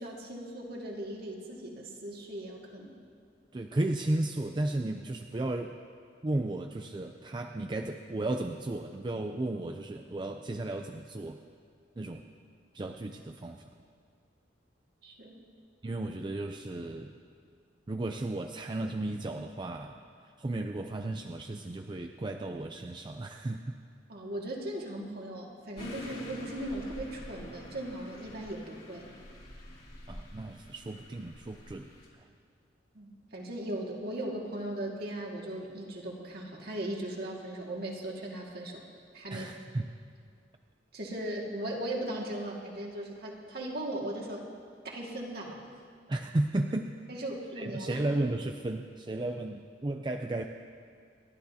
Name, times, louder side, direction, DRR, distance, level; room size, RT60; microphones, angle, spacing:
voice 1, 0.0-3.0 15.0-15.5 24.1-29.2 32.9-38.8 39.1-39.5 40.9-44.5 44.8-45.7 47.1-48.1, right 1 dB, 55° right, -1 dB, 2.0 m, -38 dB
voice 2, 3.5-5.8 6.2-11.4 12.0-12.3 12.7-13.7 15.8-17.2 17.9-23.8 30.1-32.2 39.3-39.9 46.1-46.9 47.6-50.5, right 2 dB, 25° right, 4 dB, 0.4 m, -34 dB
sound 1, 25.8-32.1, left 1 dB, 50° left, 3.1 m, -47 dB
29.0 x 12.0 x 2.8 m, 2.2 s
head